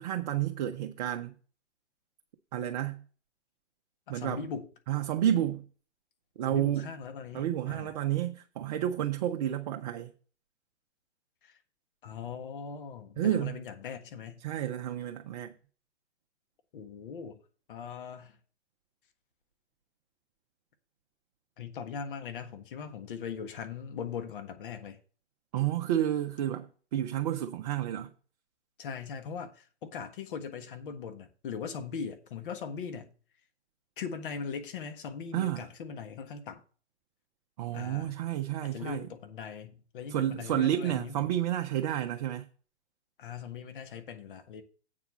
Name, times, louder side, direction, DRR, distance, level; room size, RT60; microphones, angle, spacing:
voice 1, 0.0-1.3 2.5-3.0 4.1-4.4 4.9-5.6 6.4-6.9 7.3-10.1 13.2-13.6 14.4-15.5 25.5-28.1 35.3-35.6 37.6-39.1 40.1-42.4, right 11 dB, 35° right, 0.8 m, -30 dB
voice 2, 4.1-4.7 6.5-7.9 11.4-11.6 12.0-14.4 16.7-17.4 17.7-18.4 21.6-25.0 28.8-33.1 34.0-36.6 37.7-38.2 38.6-41.2 43.2-44.6, left 6 dB, 50° left, 1.6 m, -40 dB
8.5 x 4.7 x 7.2 m
figure-of-eight pair, 120°, 34 cm